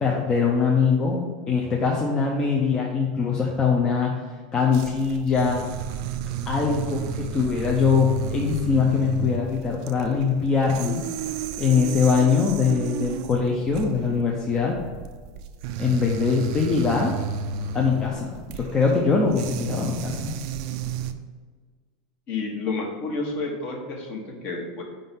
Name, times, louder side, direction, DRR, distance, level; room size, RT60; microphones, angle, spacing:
voice 1, 0.0-4.1 4.5-5.7 6.5-11.0 11.6-14.7 15.8-17.1 17.7-20.3, left 5 dB, 20° left, -2 dB, 0.7 m, -22 dB
sound 1, 4.7-21.1, right 6 dB, 55° right, 0.4 m, -33 dB
voice 2, 22.3-24.8, left 3 dB, 40° left, 1 dB, 1.3 m, -30 dB
5.3 x 3.8 x 5.7 m, 1.5 s
supercardioid pair, 150°, 4 cm